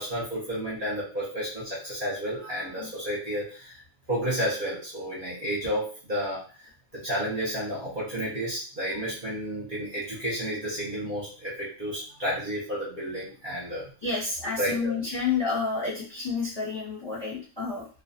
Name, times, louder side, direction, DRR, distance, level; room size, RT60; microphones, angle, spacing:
voice 1, 0.0-3.8 4.1-13.9 14.6-15.0, equal, 45° right, -6 dB, 0.7 m, -31 dB
voice 2, 14.0-17.9, left 4 dB, 25° left, -6 dB, 0.7 m, -30 dB
2.4 x 2.2 x 2.5 m, 0.39 s
omnidirectional pair, 1.5 m